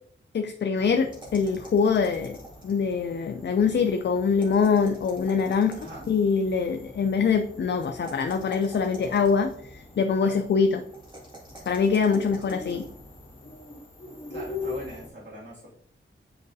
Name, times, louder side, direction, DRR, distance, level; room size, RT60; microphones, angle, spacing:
voice 1, 0.3-2.4 2.6-5.8 6.1-10.8 11.7-12.8, left 5 dB, 60° left, 6 dB, 0.4 m, -24 dB
sound 1, 0.7-15.1, left 3 dB, 25° left, 2.0 m, -43 dB
sound 2, 1.1-2.9 4.3-6.2 7.8-9.6 10.9-12.9, right 2 dB, 20° right, 2.1 m, -46 dB
voice 2, 5.8-6.1 10.2-10.3 14.3-15.7, right 1 dB, 60° right, -6 dB, 2.1 m, -42 dB
7.7 x 4.8 x 2.6 m, 0.65 s
wide cardioid pair, 105°, 21 cm